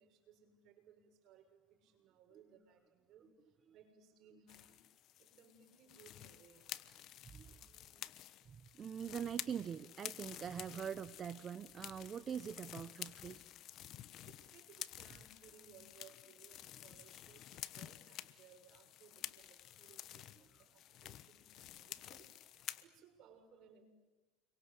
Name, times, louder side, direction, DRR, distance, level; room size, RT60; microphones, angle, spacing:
voice 1, 0.0-4.8 5.2-6.7 14.3-23.9, right 7 dB, 50° right, 4 dB, 7.0 m, -64 dB
sound 1, 4.5-22.8, left 13 dB, 50° left, 1.2 m, -51 dB
voice 2, 7.2-7.6 8.5-13.4, right 8 dB, 30° right, 14 dB, 0.8 m, -43 dB
29.5 x 23.5 x 8.2 m, 1.2 s
supercardioid pair, 115°, 0 cm